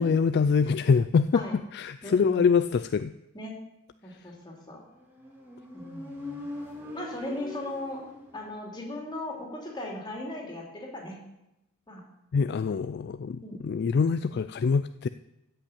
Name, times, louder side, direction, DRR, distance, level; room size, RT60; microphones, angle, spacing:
voice 1, 0.0-1.4 1.7-3.1 12.3-15.1, left 5 dB, 50° left, 12 dB, 0.3 m, -24 dB
voice 2, 2.0-2.6 3.3-3.6 4.0-4.8 5.7-6.5 6.9-8.0 8.3-11.2 11.9-12.0 13.2-13.6, left 1 dB, 20° left, -1 dB, 2.8 m, -38 dB
Motorcycle, 5.0-8.6, left 2 dB, 10° right, 2.1 m, -42 dB
14.0 x 5.5 x 8.6 m, 0.89 s
head